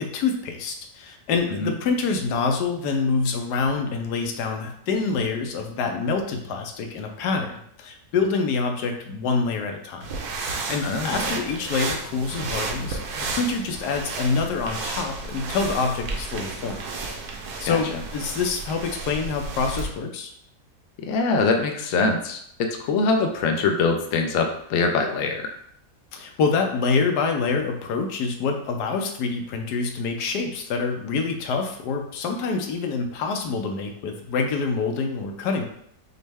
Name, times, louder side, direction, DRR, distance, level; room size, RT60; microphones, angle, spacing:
voice 1, 0.0-10.1 10.4-16.8 17.6-20.3 26.1-35.6, left 4 dB, 90° left, 4 dB, 1.2 m, -26 dB
sound 1, 10.0-19.9, right 3 dB, 75° right, 1.3 m, -32 dB
voice 2, 10.8-11.3 17.7-18.0 21.0-25.5, left 4 dB, 65° left, 4 dB, 0.9 m, -23 dB
6.2 x 2.2 x 3.4 m, 0.69 s
omnidirectional pair, 1.7 m